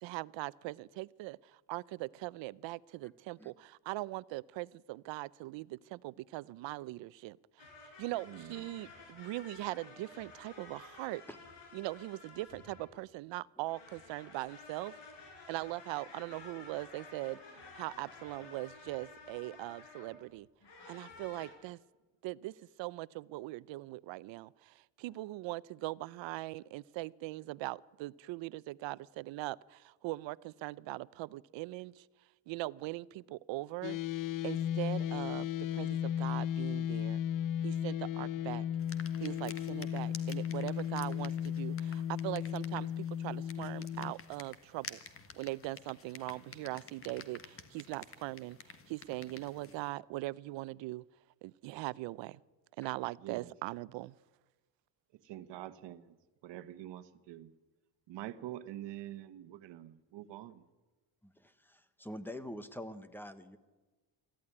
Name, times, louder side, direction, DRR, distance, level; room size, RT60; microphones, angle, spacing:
voice 1, 0.0-7.4 8.0-11.2 11.7-15.0 15.5-20.5 20.9-21.8 22.2-32.1 32.5-34.0 34.4-35.5 35.7-37.2 37.6-38.6 39.2-45.0 45.3-51.0 51.4-52.4 52.8-54.1, right 19 dB, 90° right, 20 dB, 0.7 m, -41 dB
sound 1, 7.6-13.1 13.6-20.2 20.6-21.5, left 3 dB, 70° left, 5.6 m, -53 dB
voice 2, 8.3-8.6 53.2-53.5 55.2-56.2 56.4-57.5 58.1-60.6, right 13 dB, 75° right, 12 dB, 1.3 m, -46 dB
sound 2, 33.8-44.1, left 9 dB, 50° left, 0.6 m, -35 dB
sound 3, 38.8-49.9, left 5 dB, 30° left, 1.4 m, -52 dB
voice 3, 61.2-63.6, left 1 dB, 5° left, 12 dB, 1.0 m, -45 dB
24.0 x 14.0 x 9.9 m, 1.2 s
cardioid pair, 175°, 43 cm